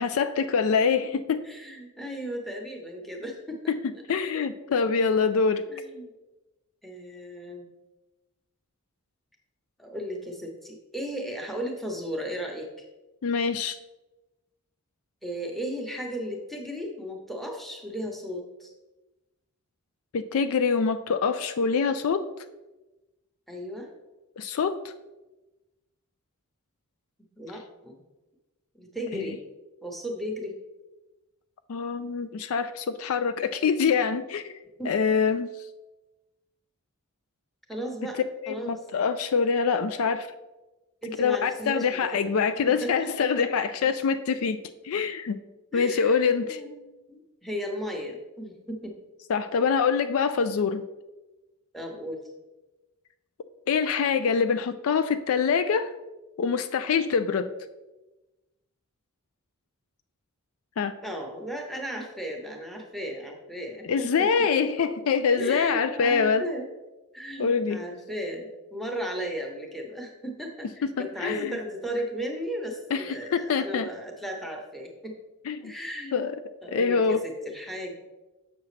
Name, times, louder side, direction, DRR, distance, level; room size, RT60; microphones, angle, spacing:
voice 1, 0.0-1.4 3.7-3.8 4.1-5.6 13.2-13.8 20.1-22.3 24.4-24.9 31.7-34.5 34.9-35.5 38.4-40.3 41.2-44.6 44.8-45.4 45.7-46.6 49.3-50.8 53.7-55.9 56.4-57.5 60.8-60.9 63.9-66.4 67.4-67.8 70.8-71.5 72.9-73.9 75.5-75.7 76.1-76.3 76.7-77.2, left 5 dB, 70° left, 11 dB, 0.4 m, -25 dB
voice 2, 1.4-3.7 4.3-4.4 5.7-6.1 6.8-7.7 9.8-12.7 15.2-18.7 23.5-23.9 27.4-28.0 28.8-29.4 29.8-30.5 34.8-35.0 37.7-38.8 41.0-42.3 42.8-43.5 45.7-49.0 51.7-52.2 61.0-64.5 65.4-66.7 67.1-75.2 75.6-76.3 76.6-77.9, equal, ahead, 1 dB, 0.9 m, -35 dB
7.2 x 6.2 x 3.2 m, 1.1 s
head